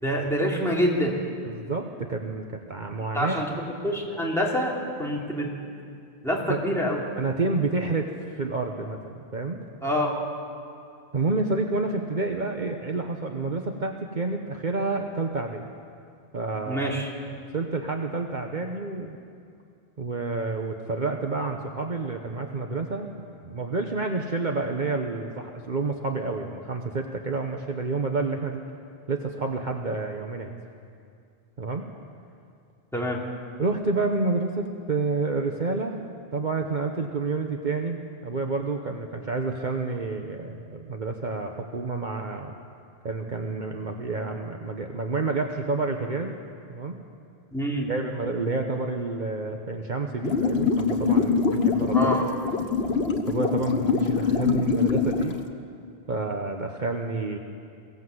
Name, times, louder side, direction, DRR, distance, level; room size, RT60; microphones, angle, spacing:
voice 1, 0.0-1.1 3.1-3.5 3.8-4.7 5.0-5.5 6.2-7.0 9.8-10.1 16.7-17.1 32.9-33.2 47.5-47.9 51.9-52.3, equal, 5° left, -3 dB, 3.2 m, -26 dB
voice 2, 1.4-3.4 6.5-6.6 7.2-9.6 11.1-15.6 16.3-16.9 17.5-19.2 20.0-23.1 23.4-28.6 29.1-30.6 31.6-31.8 33.6-36.0 36.3-42.5 43.0-46.4 46.7-47.0 47.9-52.2 53.3-55.4 56.1-57.4, right 3 dB, 50° right, 3 dB, 1.2 m, -29 dB
sound 1, 50.2-55.4, left 5 dB, 90° left, 1.6 m, -23 dB
22.5 x 16.5 x 8.0 m, 2.4 s
omnidirectional pair, 1.0 m